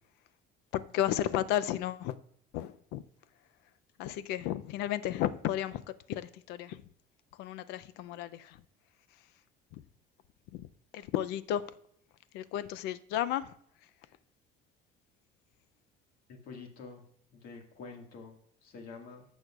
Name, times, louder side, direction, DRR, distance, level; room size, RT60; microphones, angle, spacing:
voice 1, 0.7-2.2 2.5-3.0 4.0-5.8 6.1-6.9 7.3-8.6 9.7-9.8 10.5-10.7 10.9-11.7 12.3-13.5 13.8-13.9, left 12 dB, 80° left, 0.5 m, -33 dB
voice 2, 16.3-17.0 17.3-18.3 18.6-19.2, left 4 dB, 60° left, 1.9 m, -47 dB
15.5 x 6.3 x 2.4 m
cardioid pair, 155°, 17 cm